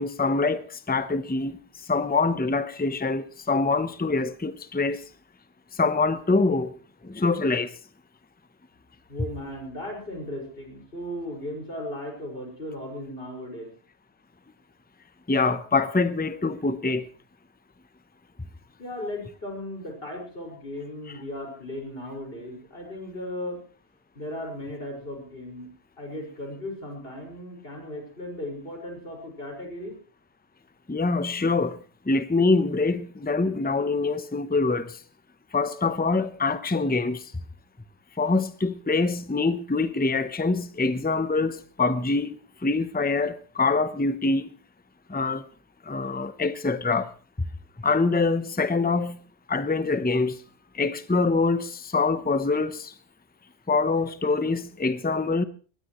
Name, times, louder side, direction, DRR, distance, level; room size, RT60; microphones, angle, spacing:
voice 1, 0.0-5.1 5.7-6.8 7.0-7.7 15.3-17.1 30.9-35.0 35.5-37.3 38.2-44.5 45.1-45.4 45.8-47.1 47.4-47.5 47.8-49.2 49.5-50.4 50.7-52.9 53.7-55.4, left 3 dB, 10° left, 0.7 m, -25 dB
voice 2, 9.1-13.7 18.8-23.6 24.1-25.7 26.0-30.0, left 1 dB, 60° left, 5.9 m, -36 dB
21.5 x 19.5 x 3.1 m
omnidirectional pair, 1.1 m